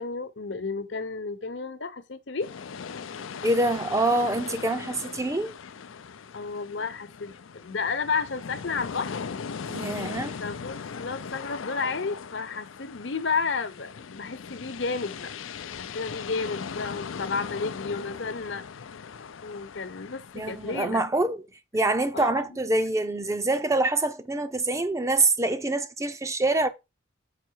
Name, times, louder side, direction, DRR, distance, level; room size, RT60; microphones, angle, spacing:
voice 1, 0.0-2.5 6.3-9.2 10.4-15.3 15.8-18.6 19.4-21.0 22.1-22.5, left 4 dB, 65° left, 0.9 m, -32 dB
sound 1, 2.4-20.9, left 6 dB, 90° left, 0.5 m, -39 dB
voice 2, 3.4-5.5 9.7-10.4 20.3-21.4 21.7-26.7, right 2 dB, 15° right, 0.5 m, -25 dB
6.6 x 5.6 x 4.5 m
head